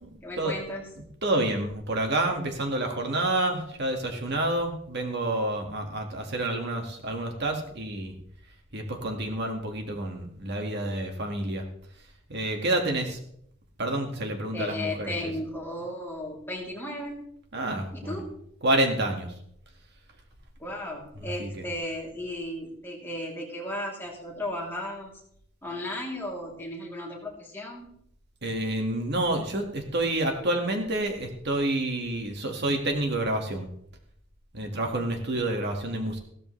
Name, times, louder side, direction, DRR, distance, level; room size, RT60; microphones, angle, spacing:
voice 1, 0.2-0.9 14.5-17.3 17.9-18.3 20.6-25.1 25.6-27.9, left 1 dB, 10° left, -3 dB, 3.2 m, -35 dB
voice 2, 1.2-8.2 8.7-11.7 12.3-13.2 13.8-15.1 17.5-18.2 18.6-19.3 21.2-21.6 28.4-33.7 34.5-36.2, right 1 dB, 55° right, 3 dB, 1.9 m, -28 dB
16.0 x 13.0 x 3.3 m, 0.69 s
head